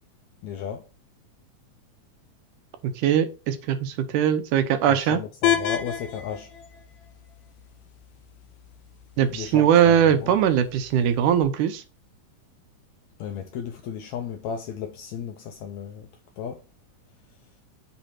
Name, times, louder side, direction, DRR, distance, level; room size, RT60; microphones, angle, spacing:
voice 1, 0.4-0.8 4.9-6.5 9.3-10.0 10.2-10.3 13.2-16.1 16.4-16.6, left 8 dB, 85° left, 1.6 m, -34 dB
voice 2, 3.0-5.2 9.2-11.8, right 9 dB, 75° right, 2.1 m, -21 dB
sound 1, 5.4-11.4, left 10 dB, 65° left, 2.1 m, -32 dB
8.3 x 3.3 x 4.3 m
omnidirectional pair, 3.9 m